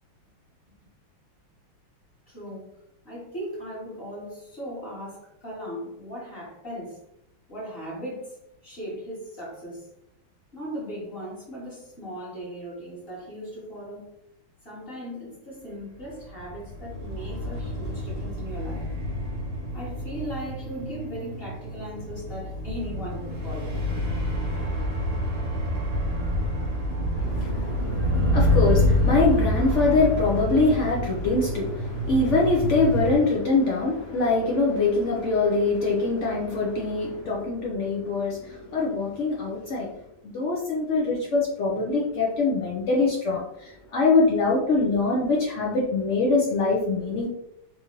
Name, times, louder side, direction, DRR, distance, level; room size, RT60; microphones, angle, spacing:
voice 1, 2.3-2.7 3.0-7.0 7.5-9.9 10.5-14.1 14.6-18.9 19.7-23.8, equal, 35° left, -5 dB, 1.3 m, -38 dB
sound 1, 16.2-33.2, left 1 dB, 55° right, 1.1 m, -27 dB
voice 2, 27.1-40.0 40.2-47.3, left 3 dB, 75° left, -3 dB, 0.6 m, -24 dB
3.6 x 2.7 x 2.9 m, 0.78 s
omnidirectional pair, 2.1 m